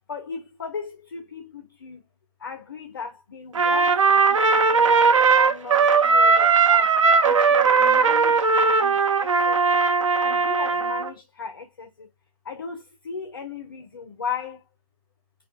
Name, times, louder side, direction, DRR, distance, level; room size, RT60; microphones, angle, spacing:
voice 1, 0.1-2.0 2.4-4.4 4.7-6.9 7.2-8.4 8.8-9.8 10.2-12.1 12.5-14.6, left 6 dB, 35° left, 0.4 m, -36 dB
Trumpet, 3.5-11.1, right 5 dB, 55° right, 0.4 m, -18 dB
2.3 x 2.2 x 2.6 m
figure-of-eight pair, 145°, 20 cm